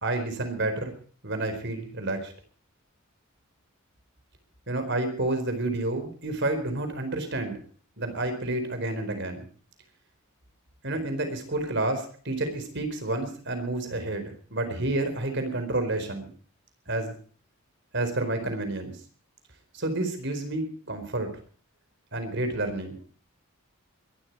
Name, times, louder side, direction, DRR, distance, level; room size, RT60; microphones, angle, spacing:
voice 1, 0.0-0.9 1.2-2.3 4.7-7.6 8.0-9.5 10.8-16.3 16.9-17.1 17.9-18.9 19.7-21.3 22.1-22.9, right 2 dB, 55° right, 7 dB, 4.4 m, -29 dB
22.0 x 13.0 x 4.7 m, 0.42 s
head